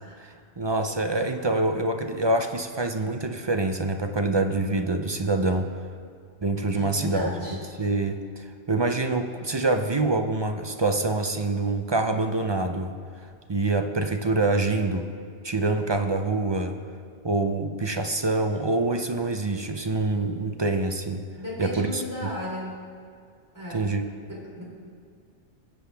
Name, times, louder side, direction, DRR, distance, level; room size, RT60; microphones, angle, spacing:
voice 1, 0.2-5.7 6.4-7.3 7.8-12.9 13.5-15.1 15.4-16.8 17.2-21.2 21.6-22.3 23.7-24.0, right 2 dB, 35° right, 5 dB, 0.4 m, -26 dB
voice 2, 6.8-7.6 21.3-22.8 23.5-23.9 24.3-24.6, equal, 15° right, -6 dB, 3.2 m, -34 dB
20.5 x 7.7 x 3.4 m, 2.2 s
omnidirectional pair, 1.2 m